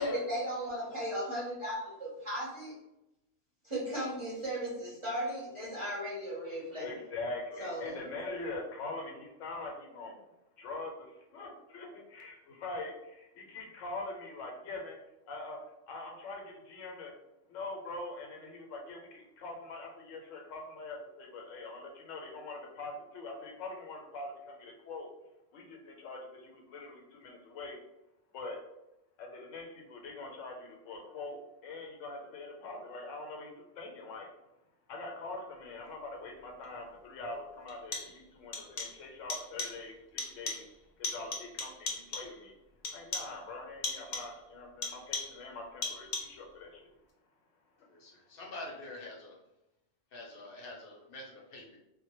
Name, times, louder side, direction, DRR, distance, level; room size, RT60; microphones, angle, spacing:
voice 1, 0.0-2.7 3.6-7.0 7.6-8.0, equal, 35° right, -7 dB, 0.5 m, -36 dB
voice 2, 6.8-10.2 10.6-15.0 15.3-15.6 15.9-17.2 17.5-25.1 25.5-27.8 28.3-28.6 29.2-34.3 34.9-40.6 41.0-42.5 42.9-46.9, left 2 dB, 90° left, 1 dB, 1.0 m, -43 dB
sound 1, 36.6-36.7 37.7-38.3 38.5-39.0 39.3-39.9 40.2-40.8 41.0-42.4 42.8-43.4 43.8-44.4 44.8-45.5 45.8-46.4, left 3 dB, 75° left, 0.3 m, -39 dB
voice 3, 47.9-49.4 50.1-51.8, left 2 dB, 60° left, -2 dB, 0.7 m, -46 dB
2.1 x 2.1 x 2.9 m, 0.90 s
omnidirectional pair, 1.3 m